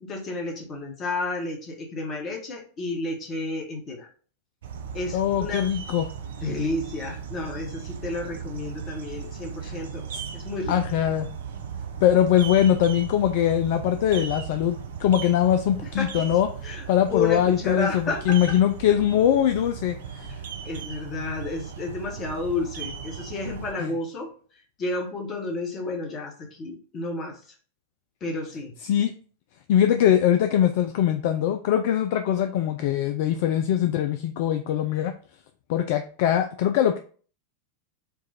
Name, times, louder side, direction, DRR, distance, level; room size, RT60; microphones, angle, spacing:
voice 1, 0.0-4.1 4.9-5.7 6.4-10.0 10.3-10.8 16.0-16.3 16.6-18.6 20.3-24.3 24.8-27.4 28.2-28.7, left 3 dB, 30° left, 2 dB, 1.2 m, -31 dB
sound 1, 4.6-23.7, right 7 dB, 60° right, 0.5 m, -37 dB
voice 2, 5.1-6.1 9.6-9.7 10.1-10.2 10.7-11.3 12.0-16.5 16.9-20.3 23.8-23.9 28.8-29.1 29.7-35.1 35.7-37.0, left 10 dB, 50° left, 7 dB, 0.3 m, -22 dB
4.5 x 2.4 x 4.1 m, 0.42 s
figure-of-eight pair, 90°, 0 cm